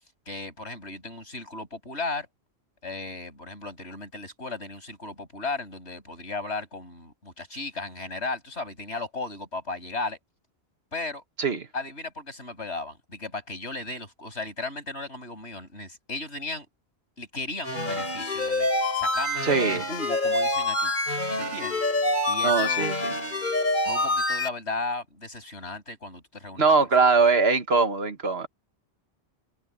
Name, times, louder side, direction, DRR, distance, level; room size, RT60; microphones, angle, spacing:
voice 1, 0.3-2.3 2.8-10.2 10.9-11.2 11.7-16.7 17.2-18.7 19.0-20.9 21.4-21.8 22.3-22.9 23.8-26.7, left 3 dB, 90° left, 7.9 m, -35 dB
sound 1, 17.6-24.5, left 2 dB, 45° left, 4.6 m, -26 dB
voice 2, 19.4-19.8 22.4-22.9 26.6-28.5, right 4 dB, 65° right, 1.8 m, -21 dB
omnidirectional pair, 1.1 m